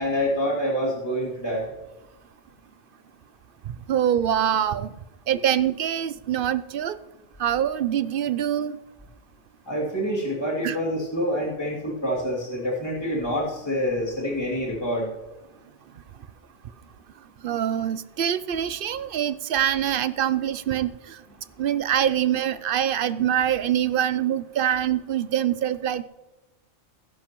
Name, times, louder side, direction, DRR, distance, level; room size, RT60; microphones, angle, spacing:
voice 1, 0.0-1.7 9.7-15.1, equal, 20° left, -5 dB, 2.8 m, -26 dB
voice 2, 3.7-4.9 5.3-7.0 7.4-8.8 10.6-10.8 17.4-21.2 21.6-26.0, right 10 dB, 60° right, 14 dB, 0.6 m, -24 dB
20.5 x 11.0 x 3.1 m, 1.1 s
omnidirectional pair, 1.2 m